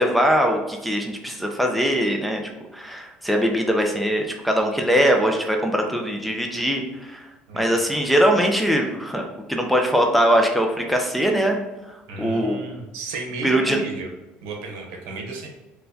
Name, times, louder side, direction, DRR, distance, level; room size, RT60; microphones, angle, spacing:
voice 1, 0.0-2.4 2.7-7.3 7.5-9.2 9.5-11.6 11.9-12.6 13.4-13.8, equal, ahead, 1 dB, 0.4 m, -21 dB
voice 2, 7.5-7.8 12.1-14.1 14.4-15.5, right 3 dB, 85° right, 1 dB, 0.8 m, -33 dB
4.3 x 2.2 x 2.6 m, 1.1 s
cardioid pair, 145°, 3 cm